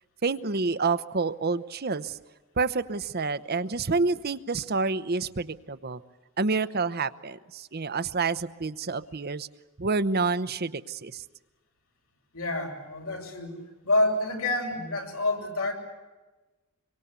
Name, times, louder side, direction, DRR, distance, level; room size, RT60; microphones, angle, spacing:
voice 1, 0.2-2.2 2.6-6.0 6.4-9.5 9.8-11.2, right 4 dB, 45° right, 13 dB, 0.8 m, -28 dB
voice 2, 12.3-15.7, left 2 dB, 85° left, 1 dB, 6.9 m, -28 dB
25.0 x 24.0 x 8.2 m, 1.2 s
head